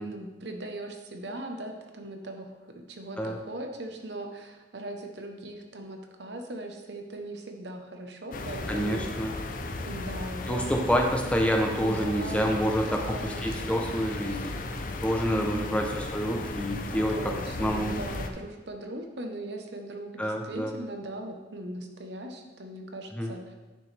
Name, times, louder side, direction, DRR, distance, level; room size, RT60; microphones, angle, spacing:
voice 1, 0.0-9.3 9.8-10.8 11.7-13.4 15.3-15.8 16.9-23.5, right 1 dB, 70° right, 4 dB, 1.0 m, -39 dB
sound 1, 8.3-18.3, left 2 dB, 50° left, 0.6 m, -35 dB
voice 2, 8.7-9.3 10.5-14.5 15.0-17.2 17.6-17.9 20.2-20.7 23.1-23.3, equal, 5° left, 1 dB, 0.7 m, -28 dB
9.1 x 6.5 x 3.4 m, 1.2 s
head